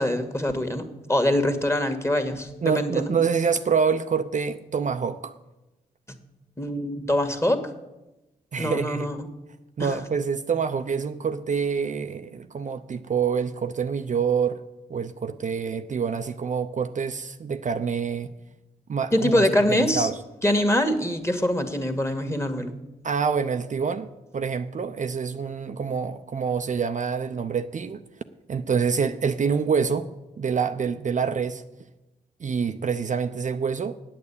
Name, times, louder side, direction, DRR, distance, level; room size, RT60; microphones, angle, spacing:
voice 1, 0.0-3.1 6.6-7.6 8.6-9.2 9.8-9.9 19.1-20.1 20.4-22.7, left 1 dB, 15° left, 7 dB, 1.9 m, -24 dB
voice 2, 2.6-5.3 8.5-9.1 9.8-14.6 14.9-18.3 18.9-20.2 23.0-24.1 24.3-28.0 28.5-30.1 30.4-31.6 32.4-33.9, right 6 dB, 45° right, 8 dB, 0.6 m, -26 dB
8.6 x 8.3 x 8.5 m, 1.0 s
supercardioid pair, 40°, 17 cm